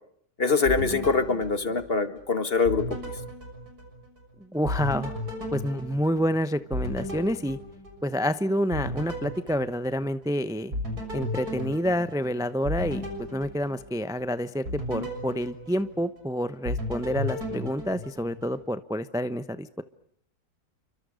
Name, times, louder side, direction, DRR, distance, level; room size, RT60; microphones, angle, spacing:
voice 1, 0.4-3.0, left 4 dB, 35° left, 11 dB, 1.8 m, -24 dB
sound 1, 0.6-2.3 2.6-4.3 4.6-8.3 8.7-10.3 10.7-14.2 14.6-16.3 16.6-18.6, left 1 dB, 55° right, 7.2 m, -35 dB
voice 2, 4.5-5.1 5.5-7.6 8.0-10.7 11.1-19.8, equal, 5° right, 12 dB, 0.3 m, -28 dB
30.0 x 25.5 x 6.5 m, 0.69 s
omnidirectional pair, 2.0 m